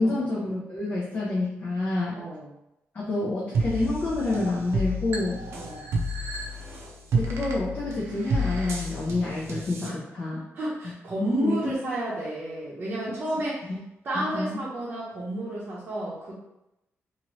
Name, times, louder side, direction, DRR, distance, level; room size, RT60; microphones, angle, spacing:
voice 1, 0.0-2.2 2.9-5.4 7.1-10.4 11.4-11.7 14.1-14.6, left 2 dB, 35° left, -6 dB, 0.6 m, -28 dB
voice 2, 2.1-2.5 5.6-5.8 9.8-10.0 10.3-13.7 14.0-16.3, right 1 dB, 40° right, -9 dB, 0.8 m, -31 dB
digi cow, 3.5-9.9, right 1 dB, 75° right, 0.6 m, -30 dB
2.9 x 2.7 x 3.0 m, 0.90 s
wide cardioid pair, 160°, 5 cm